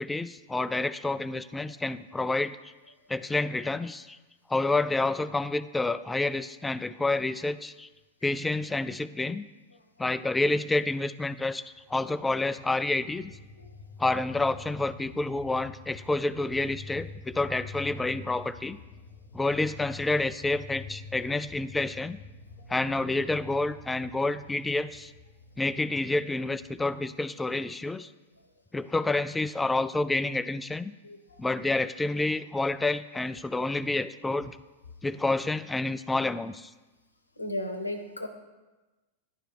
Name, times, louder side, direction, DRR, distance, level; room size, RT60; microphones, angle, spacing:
voice 1, 0.0-2.6 3.1-4.2 4.5-7.9 8.2-9.4 10.0-13.3 14.0-18.8 19.3-22.2 22.7-25.1 25.6-28.1 28.7-30.9 31.4-34.6 35.0-36.7, left 2 dB, 10° left, 14 dB, 0.3 m, -29 dB
sound 1, 11.7-27.1, left 3 dB, 45° left, 0.9 m, -47 dB
voice 2, 37.4-38.3, left 1 dB, 80° left, 7 dB, 0.8 m, -34 dB
11.0 x 4.9 x 4.4 m, 1.1 s
figure-of-eight pair, 90°, 0 cm